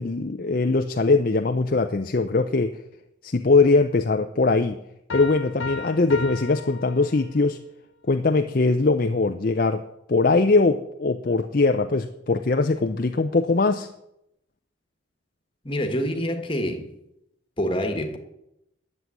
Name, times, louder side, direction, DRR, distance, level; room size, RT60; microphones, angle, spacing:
voice 1, 0.0-2.8 3.2-4.8 5.1-7.6 8.1-9.8 10.1-13.9, left 3 dB, 45° left, 0.5 m, -21 dB
sound 1, 5.1-7.6, left 4 dB, 70° left, 1.2 m, -35 dB
voice 2, 15.6-16.9 17.6-18.2, equal, 25° left, 1.5 m, -26 dB
10.5 x 7.6 x 9.5 m
head